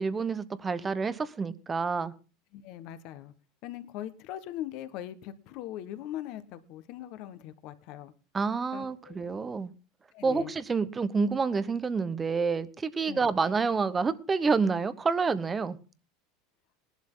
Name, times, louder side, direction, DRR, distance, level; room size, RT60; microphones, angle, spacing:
voice 1, 0.0-2.1 8.3-9.7 10.2-15.8, right 4 dB, 15° right, 15 dB, 0.9 m, -28 dB
voice 2, 2.5-3.3 3.6-8.1 8.7-9.2 10.1-10.5 13.0-13.3, left 12 dB, 50° left, 12 dB, 1.4 m, -40 dB
19.5 x 11.5 x 3.9 m, 0.35 s
supercardioid pair, 155°, 0 cm